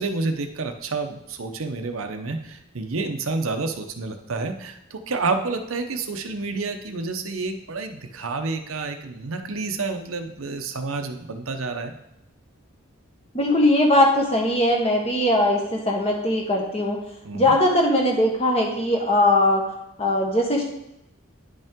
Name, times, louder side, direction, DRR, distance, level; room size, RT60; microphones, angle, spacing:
voice 1, 0.0-11.9 17.2-17.6, right 3 dB, 80° right, 6 dB, 0.8 m, -29 dB
voice 2, 13.3-17.0 17.3-19.6 20.0-20.6, left 1 dB, 30° left, 0 dB, 1.3 m, -20 dB
9.8 x 5.4 x 3.7 m, 0.85 s
head